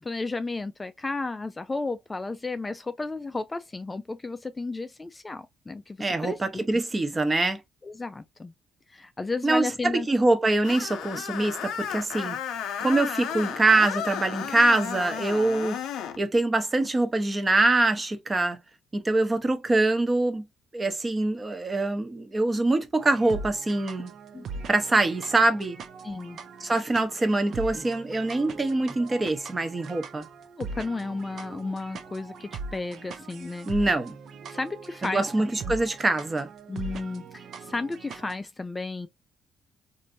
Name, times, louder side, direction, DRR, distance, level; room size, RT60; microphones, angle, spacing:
voice 1, 0.0-6.4 6.7-6.8 7.8-8.5 8.9-10.1 24.3-24.5 26.0-26.4 30.6-33.7 34.5-35.2 35.6-35.7 36.7-39.1, left 3 dB, 20° left, 0.3 m, -33 dB
voice 2, 6.0-7.6 9.4-12.4 12.8-15.8 16.2-18.6 18.9-20.4 20.7-24.1 24.7-25.8 26.6-30.3 33.7-34.2 35.0-36.5, right 2 dB, 25° right, 0.8 m, -24 dB
Screech, 10.6-16.2, left 8 dB, 85° left, 0.5 m, -33 dB
sound 1, 23.0-38.4, right 4 dB, 65° right, 0.6 m, -41 dB
3.1 x 2.6 x 2.6 m
cardioid pair, 90°, 0 cm